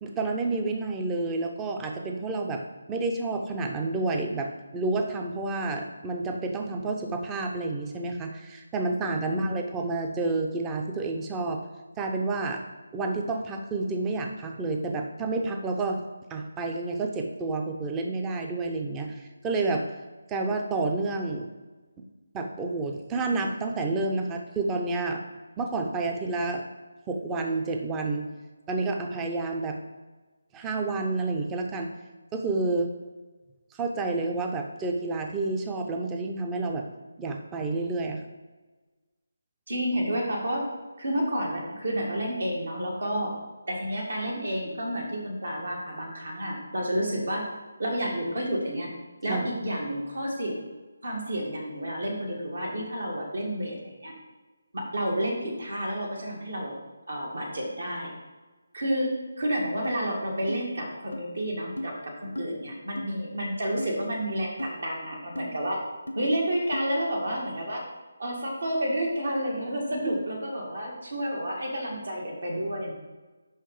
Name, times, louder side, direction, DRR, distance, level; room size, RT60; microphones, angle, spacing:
voice 1, 0.0-2.6 2.9-11.7 12.0-12.6 12.9-16.0 16.3-19.9 20.3-21.5 22.0-22.1 22.3-25.2 25.6-26.6 27.1-28.3 28.7-29.8 30.5-31.9 32.3-32.9 33.7-36.8 37.2-38.2 49.3-49.4 69.9-70.1, right 3 dB, 15° right, 3 dB, 0.5 m, -29 dB
voice 2, 39.7-40.7 41.0-43.3 43.7-47.5 47.8-48.9 49.2-50.6 51.0-54.1 54.7-56.7 57.1-58.1 58.7-65.8 66.2-67.8 68.2-72.9, equal, 70° right, 0 dB, 1.9 m, -30 dB
sound 1, 59.8-60.0 60.5-60.6 61.1-61.2 61.8-61.9 62.4-62.5 63.0-63.1 63.8-63.9 64.6-64.7 65.4-65.5 66.1-66.2 66.7-66.9, left 1 dB, 75° left, 0.7 m, -34 dB
5.6 x 5.2 x 4.9 m, 1.3 s
figure-of-eight pair, 155°, 0 cm